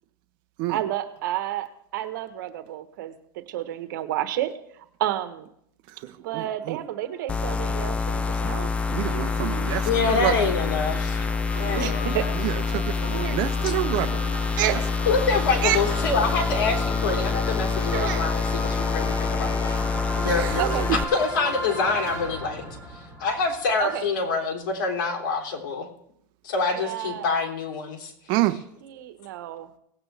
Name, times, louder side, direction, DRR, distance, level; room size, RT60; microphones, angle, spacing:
voice 1, 0.7-4.5 5.0-5.3 6.2-8.7 11.6-12.2 13.1-13.4 14.6-14.8 15.6-15.8 17.9-18.3 20.6-20.9 23.8-24.1 26.8-27.3 29.0-29.7, right 13 dB, 70° right, 10 dB, 1.3 m, -30 dB
voice 2, 6.0-6.8 8.9-10.5 12.3-14.3 14.7-14.8 20.2-21.0 28.3-28.6, right 16 dB, 45° right, 9 dB, 0.7 m, -28 dB
sound 1, 7.0-24.0, left 1 dB, 35° left, 3.1 m, -36 dB
sound 2, 7.3-21.0, left 4 dB, 10° left, 0.5 m, -26 dB
voice 3, 9.8-11.3 11.6-12.3 15.0-19.9 20.2-20.6 21.1-22.6 22.9-25.9 26.4-28.1, left 4 dB, 75° left, 1 dB, 3.2 m, -26 dB
18.0 x 8.8 x 3.4 m, 0.71 s
supercardioid pair, 145°, 11 cm